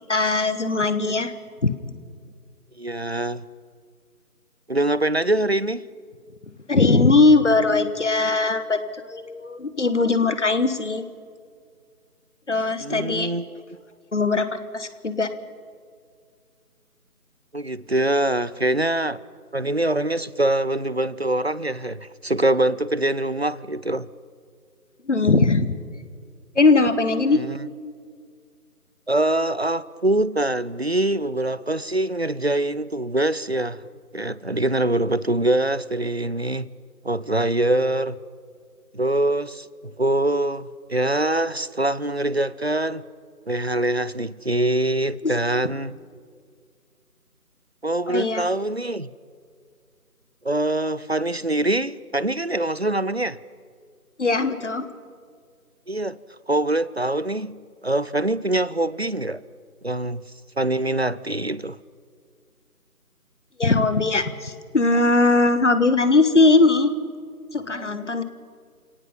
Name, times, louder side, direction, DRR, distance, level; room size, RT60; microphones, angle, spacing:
voice 1, 0.1-1.3 1.6-1.7 6.7-11.1 12.5-13.3 14.1-15.3 25.0-25.7 26.5-27.4 45.2-45.3 48.1-48.4 54.2-54.9 63.6-66.9 67.5-68.2, left 3 dB, 50° left, 1.4 m, -20 dB
voice 2, 2.8-3.5 4.7-5.9 12.8-13.6 17.5-19.2 19.5-24.1 27.3-27.6 29.1-33.8 34.1-36.7 37.0-38.2 38.9-43.0 43.5-46.0 47.8-49.1 50.4-53.4 55.9-56.2 56.5-57.6 57.8-59.4 59.8-60.2 60.6-61.8, right 1 dB, 45° right, 0.5 m, -24 dB
29.0 x 18.0 x 5.7 m
figure-of-eight pair, 165°, 46 cm